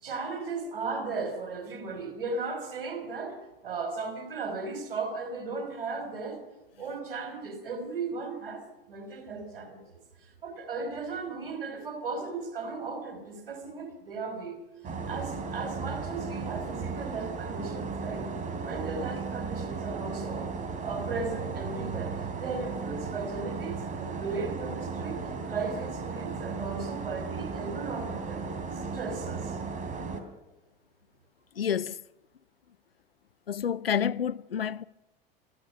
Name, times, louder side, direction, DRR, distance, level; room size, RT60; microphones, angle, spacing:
voice 1, 0.0-6.4 6.8-10.0 10.4-14.6 15.1-18.3 18.6-20.5 20.8-28.5 28.7-29.6, right 4 dB, 70° right, 4.8 m, -36 dB
sound 1, 14.8-30.2, right 4 dB, 25° right, 3.1 m, -35 dB
voice 2, 31.6-32.0 33.5-34.8, left 8 dB, 80° left, 0.6 m, -29 dB
27.0 x 15.0 x 6.7 m
figure-of-eight pair, 85°, 29 cm